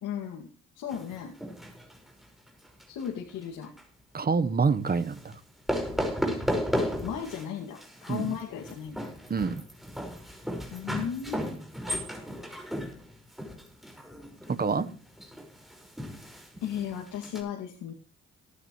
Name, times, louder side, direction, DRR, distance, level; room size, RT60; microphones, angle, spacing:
voice 1, 0.0-0.5 0.7-1.3 2.9-3.7 6.7-9.1 10.7-11.4 16.6-17.9, left 9 dB, 85° left, 1 dB, 2.5 m, -35 dB
sound 1, 0.9-3.1 3.4-3.8 4.9-5.3 5.7-7.5 7.8-17.4, equal, ahead, 5.5 m, -35 dB
voice 2, 4.1-5.4 8.1-8.4 9.3-9.5 14.5-14.9, right 5 dB, 30° right, 12 dB, 1.2 m, -26 dB
18.0 x 9.9 x 3.3 m, 0.36 s
cardioid pair, 90°, 30 cm